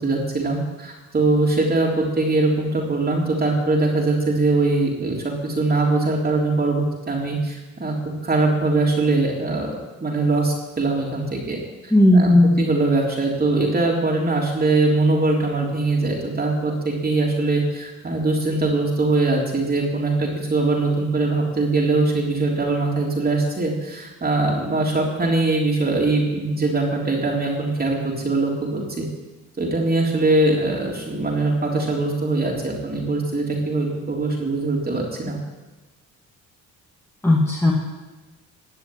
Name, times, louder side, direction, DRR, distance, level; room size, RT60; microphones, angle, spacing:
voice 1, 0.0-9.7 10.0-12.3 12.6-29.0 29.6-35.4, right 2 dB, 30° right, -2 dB, 3.5 m, -22 dB
voice 2, 11.9-12.6 37.2-37.7, left 1 dB, 10° left, -4 dB, 2.5 m, -15 dB
17.0 x 6.2 x 9.6 m, 1.2 s
cardioid pair, 90°, 30 cm